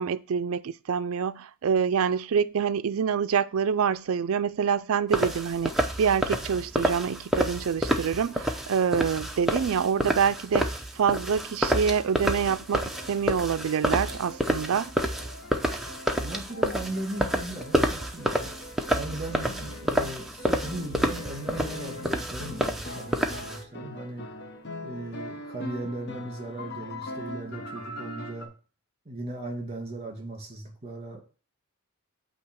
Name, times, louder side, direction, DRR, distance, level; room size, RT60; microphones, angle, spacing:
voice 1, 0.0-14.9, right 7 dB, 65° right, 0.4 m, -26 dB
sound 1, 5.1-23.6, equal, ahead, 0.6 m, -29 dB
sound 2, 12.2-28.5, left 1 dB, 50° left, 0.9 m, -42 dB
voice 2, 16.1-18.5 18.9-24.3 24.8-28.5 29.1-31.2, right 2 dB, 30° right, 2.3 m, -37 dB
8.5 x 2.9 x 6.2 m
head